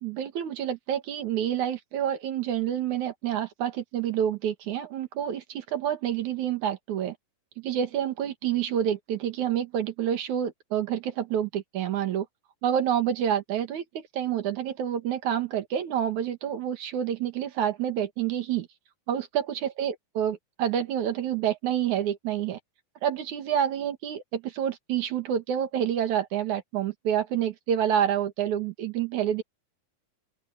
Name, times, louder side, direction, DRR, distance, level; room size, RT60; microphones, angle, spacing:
voice 1, 0.0-7.2 7.6-12.3 12.6-18.7 19.1-22.6 23.0-29.4, right 9 dB, 60° right, 2.8 m, -28 dB
open air
omnidirectional pair, 4.1 m